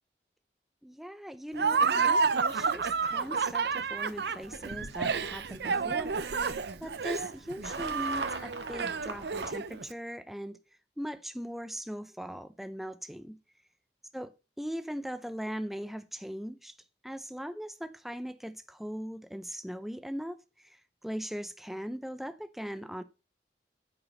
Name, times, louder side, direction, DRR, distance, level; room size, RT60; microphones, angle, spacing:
voice 1, 0.8-6.5 6.8-10.6 11.0-13.4 14.1-14.3 14.6-16.8 17.0-23.0, equal, ahead, 0.6 m, -40 dB
Laughter, 1.5-9.8, right 5 dB, 70° right, 0.6 m, -30 dB
sound 1, 4.4-9.5, right 3 dB, 90° right, 1.6 m, -42 dB
8.9 x 6.1 x 5.3 m
head